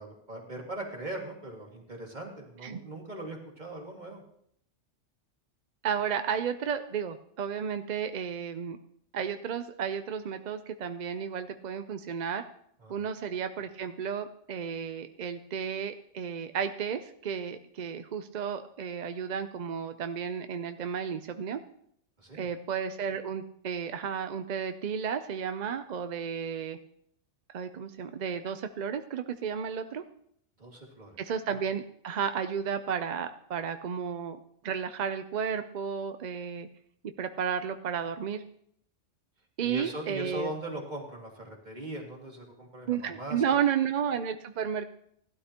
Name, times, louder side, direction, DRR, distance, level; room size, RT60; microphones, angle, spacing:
voice 1, 0.0-4.2 12.8-13.0 22.2-22.5 30.6-31.1 39.6-43.6, right 1 dB, 35° right, 0 dB, 2.3 m, -40 dB
voice 2, 5.8-8.8 9.1-12.4 12.9-21.6 22.3-26.8 27.5-30.0 31.2-34.4 34.6-36.7 37.2-38.4 39.6-40.5 42.9-44.9, right 7 dB, 55° right, 9 dB, 0.5 m, -33 dB
17.5 x 12.0 x 2.9 m, 0.70 s
omnidirectional pair, 1.3 m